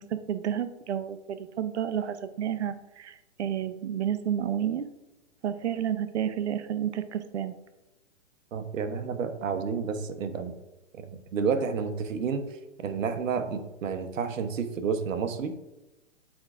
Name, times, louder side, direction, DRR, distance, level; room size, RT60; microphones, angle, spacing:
voice 1, 0.0-4.9 5.4-7.5, right 9 dB, 60° right, 11 dB, 0.6 m, -31 dB
voice 2, 8.5-10.5 11.0-12.4 12.8-15.5, right 6 dB, 85° right, 9 dB, 0.9 m, -30 dB
8.7 x 4.7 x 2.4 m, 1.0 s
hypercardioid pair, 175°, 38 cm